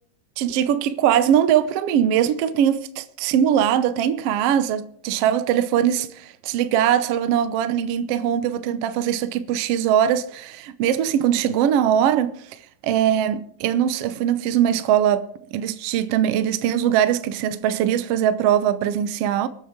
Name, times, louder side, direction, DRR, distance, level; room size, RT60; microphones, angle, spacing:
voice 1, 0.4-12.3 12.8-19.5, right 10 dB, 70° right, 1.6 m, -21 dB
25.0 x 8.7 x 3.7 m
omnidirectional pair, 3.4 m